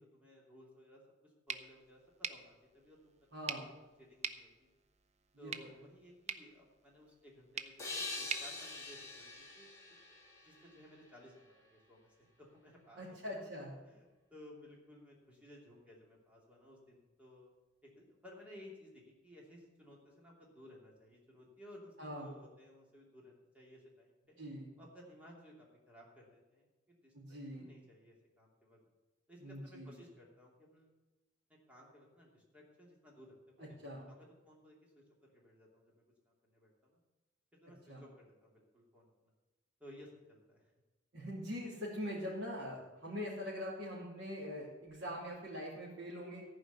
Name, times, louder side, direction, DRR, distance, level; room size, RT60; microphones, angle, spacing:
voice 1, 0.1-3.2 3.4-4.7 5.4-9.8 10.4-17.5 17.8-24.4 24.8-28.8 29.3-30.9 31.7-37.0 37.5-39.3 39.8-40.7, left 1 dB, 5° right, -3 dB, 2.8 m, -58 dB
sound 1, 1.5-9.5, right 6 dB, 35° right, 0.6 m, -47 dB
voice 2, 3.3-3.7 5.3-5.7 12.9-13.7 22.0-22.3 24.4-24.7 27.1-27.7 29.4-30.0 33.6-34.1 37.9-38.0 41.1-46.4, equal, 70° right, -7 dB, 3.1 m, -43 dB
sound 2, 7.8-11.3, left 3 dB, 15° left, 3.0 m, -45 dB
14.5 x 5.1 x 8.2 m, 1.1 s
head